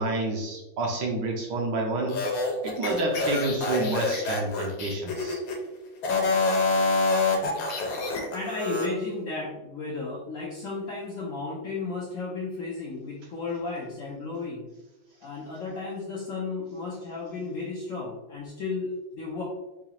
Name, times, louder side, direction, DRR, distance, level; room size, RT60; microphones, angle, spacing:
voice 1, 0.0-2.2 2.6-5.4, right 2 dB, 70° right, 1 dB, 1.2 m, -28 dB
sound 1, 2.1-5.6 6.0-8.9, left 3 dB, 85° left, 1.5 m, -26 dB
voice 2, 8.3-14.7 15.2-19.4, left 3 dB, 65° left, -4 dB, 0.8 m, -34 dB
4.8 x 2.3 x 2.9 m, 1.0 s
omnidirectional pair, 2.0 m